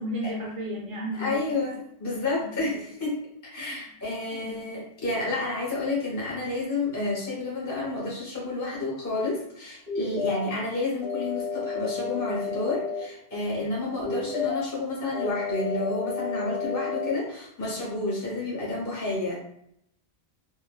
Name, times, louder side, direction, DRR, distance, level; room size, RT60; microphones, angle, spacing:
voice 1, 0.0-1.5 2.4-2.7 3.6-4.7, equal, 50° right, -4 dB, 0.4 m, -35 dB
voice 2, 1.2-19.4, left 2 dB, 20° left, -5 dB, 0.7 m, -30 dB
sound 1, 9.9-10.5 11.0-13.0 14.0-14.6 15.1-17.1, left 5 dB, 50° left, 1.8 m, -31 dB
3.1 x 2.1 x 2.2 m, 0.74 s
omnidirectional pair, 1.1 m